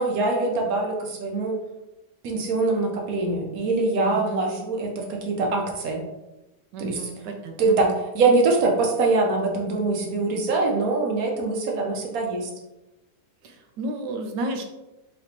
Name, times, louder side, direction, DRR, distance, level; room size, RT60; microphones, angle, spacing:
voice 1, 0.0-1.5 2.2-6.0 6.8-7.0 7.6-12.5, right 3 dB, 65° right, 1 dB, 1.2 m, -23 dB
voice 2, 4.0-4.4 6.7-7.8 13.4-14.6, right 2 dB, 90° right, 5 dB, 1.3 m, -32 dB
4.2 x 3.1 x 2.9 m, 0.98 s
omnidirectional pair, 1.8 m